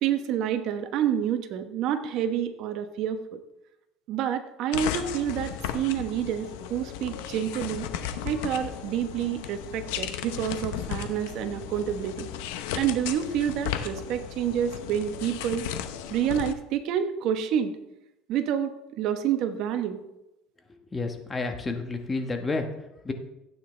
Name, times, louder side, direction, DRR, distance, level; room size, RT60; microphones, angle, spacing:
voice 1, 0.0-3.4 4.1-7.9 8.2-12.3 12.7-15.6 16.1-17.7 18.3-20.0, right 9 dB, 60° right, 8 dB, 1.0 m, -28 dB
sound 1, 4.7-16.5, left 10 dB, 85° left, 0.8 m, -35 dB
voice 2, 20.7-22.7 23.0-23.1, left 3 dB, 20° left, 5 dB, 1.3 m, -30 dB
15.5 x 8.9 x 3.3 m, 0.93 s
supercardioid pair, 120°, 0 cm